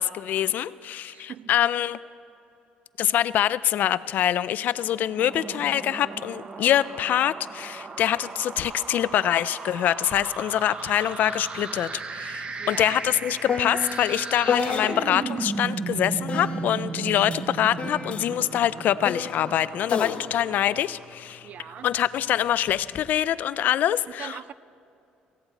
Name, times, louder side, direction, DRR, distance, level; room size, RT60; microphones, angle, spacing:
voice 1, 0.0-2.0 3.0-21.5 21.8-24.4, left 11 dB, 65° left, 17 dB, 0.4 m, -25 dB
voice 2, 1.0-1.5 12.6-13.0 21.4-21.9 24.2-24.5, right 9 dB, 50° right, 18 dB, 0.4 m, -41 dB
sound 1, 5.0-21.3, right 4 dB, 35° right, 0.8 m, -36 dB
sound 2, 10.1-10.3 10.6-15.4 16.3-21.8 22.7-23.1, left 6 dB, 40° left, 0.8 m, -33 dB
17.0 x 15.5 x 4.1 m, 2.6 s
cardioid pair, 110°, 3 cm